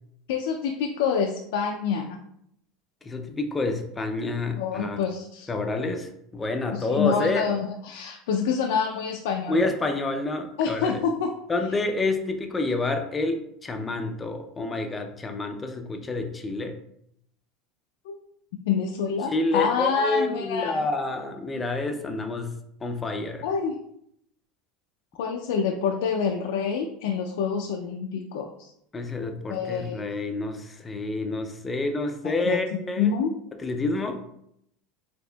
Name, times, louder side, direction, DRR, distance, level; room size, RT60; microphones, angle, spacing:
voice 1, 0.3-2.2 4.6-5.5 6.7-9.6 10.6-11.3 18.1-18.2 18.7-20.8 23.4-23.8 25.2-28.7 29.5-30.1 32.2-32.6 33.0-33.3, left 6 dB, 85° left, 3 dB, 0.3 m, -27 dB
voice 2, 3.0-5.0 5.5-7.5 9.5-11.0 11.5-16.7 19.3-22.5 22.8-23.5 28.9-33.1 33.6-34.2, left 2 dB, 15° left, 5 dB, 0.4 m, -28 dB
4.2 x 2.8 x 2.2 m, 0.74 s
supercardioid pair, 155°, 0 cm